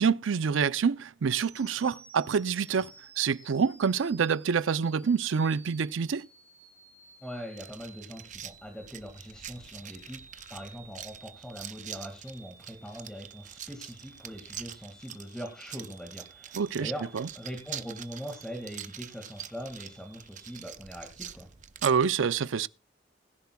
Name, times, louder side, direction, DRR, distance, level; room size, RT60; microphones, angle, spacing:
voice 1, 0.0-2.9 3.2-6.3 16.5-17.3 21.8-22.7, right 6 dB, 85° right, 0.5 m, -27 dB
sound 1, 1.3-20.7, right 4 dB, 15° right, 1.4 m, -55 dB
voice 2, 7.2-21.5, equal, 5° left, 1.9 m, -42 dB
sound 2, 7.6-22.1, right 10 dB, 40° right, 0.6 m, -45 dB
20.5 x 10.5 x 2.3 m
head